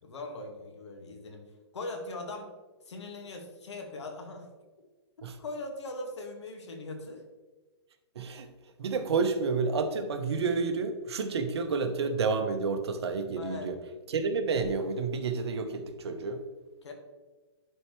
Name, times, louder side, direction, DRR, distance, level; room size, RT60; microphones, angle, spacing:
voice 1, 0.0-1.5 1.7-2.5 2.9-4.5 5.4-7.2 13.4-13.7 16.8-16.9, left 2 dB, 85° left, 3 dB, 1.8 m, -40 dB
voice 2, 8.1-13.8 14.1-16.4, right 4 dB, 70° right, 7 dB, 1.1 m, -30 dB
11.0 x 4.6 x 3.2 m, 1.3 s
hypercardioid pair, 155°, 14 cm